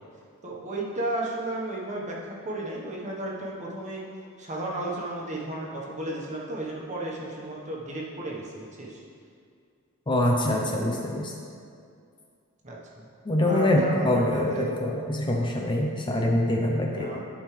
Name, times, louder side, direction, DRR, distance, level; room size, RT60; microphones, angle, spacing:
voice 1, 0.4-4.1 4.4-9.0 12.6-13.1 13.4-14.7 15.5-15.6 16.8-17.2, right 1 dB, 35° right, -3 dB, 1.3 m, -34 dB
voice 2, 10.1-11.3 13.3-17.2, left 1 dB, 20° left, 0 dB, 0.6 m, -24 dB
12.0 x 5.3 x 3.3 m, 2.3 s
head